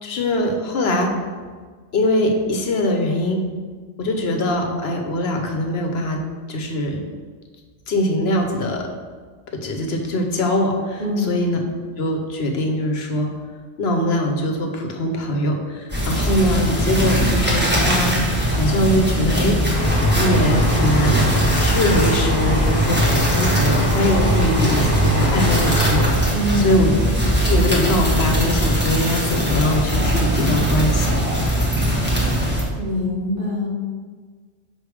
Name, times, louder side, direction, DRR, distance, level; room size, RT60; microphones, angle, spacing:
voice 1, 0.0-1.1 1.9-3.4 4.0-6.2 6.5-7.0 7.9-8.8 9.6-11.6 12.0-13.3 13.8-18.1 18.5-19.6 20.2-27.0 27.5-31.1, left 1 dB, 65° left, 3 dB, 1.0 m, -22 dB
voice 2, 11.0-11.3 26.3-26.9 32.8-33.7, left 1 dB, 50° right, -6 dB, 1.8 m, -23 dB
sound 1, 15.9-32.6, equal, 10° right, 1.2 m, -20 dB
sound 2, 19.7-26.1, equal, 5° left, 1.2 m, -22 dB
6.0 x 3.4 x 4.8 m, 1.5 s
omnidirectional pair, 1.2 m